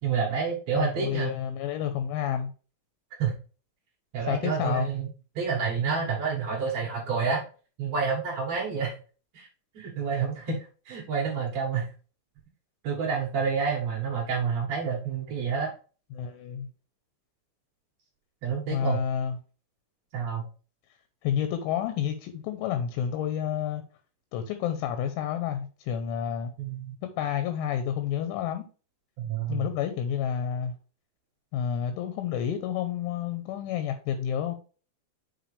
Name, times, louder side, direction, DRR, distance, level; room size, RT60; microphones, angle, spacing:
voice 1, 0.0-1.3 3.2-3.3 4.1-5.1 5.3-7.4 7.8-9.0 9.3-9.5 9.7-10.6 10.9-11.9 12.8-15.7 18.4-19.0 20.1-20.4 26.6-27.0 29.2-29.7, right 6 dB, 90° right, -2 dB, 1.5 m, -28 dB
voice 2, 0.8-2.5 4.3-4.9 16.1-16.7 18.7-19.4 21.2-23.8 24.3-26.5 27.0-28.7 29.5-30.7 31.5-34.5, left 9 dB, 80° left, 8 dB, 3.1 m, -30 dB
7.8 x 4.8 x 3.3 m, 0.36 s
omnidirectional pair, 5.8 m